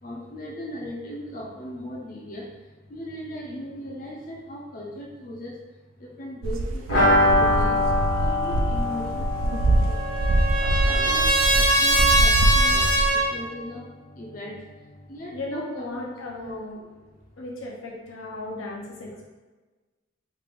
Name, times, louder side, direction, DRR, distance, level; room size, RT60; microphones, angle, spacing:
voice 1, 0.0-5.6 6.0-7.8 8.1-13.9 14.2-14.6 15.1-16.1 16.4-16.5, equal, 45° left, -3 dB, 0.5 m, -38 dB
sound 1, 6.4-13.1, right 1 dB, 85° right, 0.4 m, -24 dB
sound 2, 6.9-12.5 12.7-12.8 13.1-13.2, left 1 dB, 60° left, 1.3 m, -25 dB
Trumpet, 9.4-13.3, right 1 dB, 40° right, 0.8 m, -22 dB
voice 2, 15.3-16.8 17.4-19.3, left 2 dB, 85° left, -2 dB, 0.7 m, -35 dB
3.2 x 2.5 x 3.5 m, 1.3 s
head